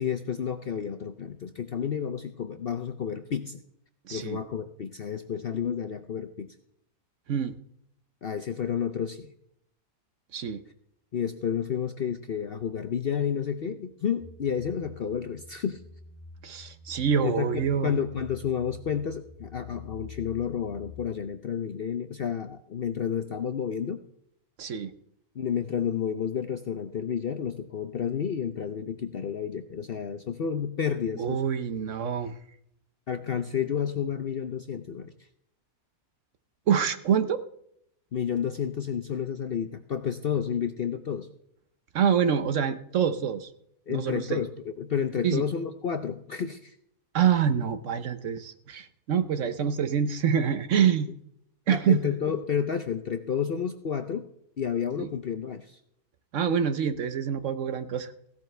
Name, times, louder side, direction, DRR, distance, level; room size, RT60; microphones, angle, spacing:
voice 1, 0.0-3.6 4.1-6.5 8.2-9.3 11.1-15.8 17.2-24.0 25.4-31.4 33.1-35.1 38.1-41.3 43.9-44.5 44.8-46.7 51.7-54.3 54.6-55.8, left 8 dB, 55° left, 8 dB, 0.7 m, -30 dB
voice 2, 4.1-4.4 7.3-7.5 10.3-10.6 16.4-17.9 24.6-24.9 31.2-32.3 36.7-37.4 41.9-43.5 43.9-44.4 45.2-45.4 47.1-51.1 51.7-52.2 55.0-55.1 56.3-58.1, right 8 dB, 60° right, 11 dB, 1.0 m, -26 dB
sound 1, 14.2-21.1, left 4 dB, 25° left, 3.6 m, -48 dB
16.0 x 12.0 x 3.3 m, 0.73 s
omnidirectional pair, 1.6 m